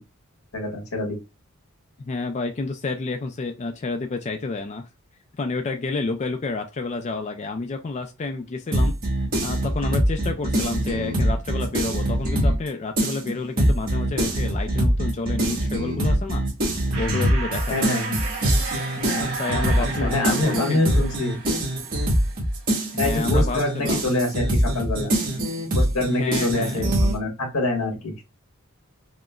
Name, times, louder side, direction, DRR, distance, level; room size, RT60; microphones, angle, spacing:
voice 1, 0.5-1.2 17.7-18.2 20.0-21.4 23.0-25.1 25.7-28.1, left 2 dB, 85° left, 1.4 m, -25 dB
voice 2, 2.0-4.9 5.4-9.0 9.4-16.5 17.0-17.9 18.9-21.1 22.9-24.1 26.1-26.9, left 3 dB, 30° left, 0.3 m, -29 dB
sound 1, 8.7-12.7 13.0-27.1, right 1 dB, 40° right, 1.7 m, -23 dB
sound 2, 16.9-22.4, right 3 dB, 65° right, 1.2 m, -34 dB
4.9 x 2.1 x 2.3 m
head